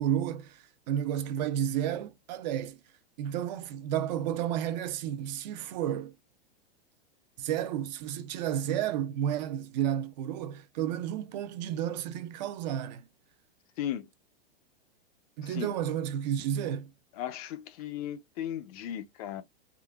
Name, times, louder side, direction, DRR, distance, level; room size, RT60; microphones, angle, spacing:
voice 1, 0.0-2.8 3.2-6.1 7.4-13.1 15.4-16.9, right 10 dB, 50° right, 0.5 m, -31 dB
voice 2, 13.8-14.1 15.4-15.7 17.2-19.4, left 10 dB, 40° left, 0.5 m, -36 dB
3.8 x 2.4 x 2.3 m
supercardioid pair, 155°, 29 cm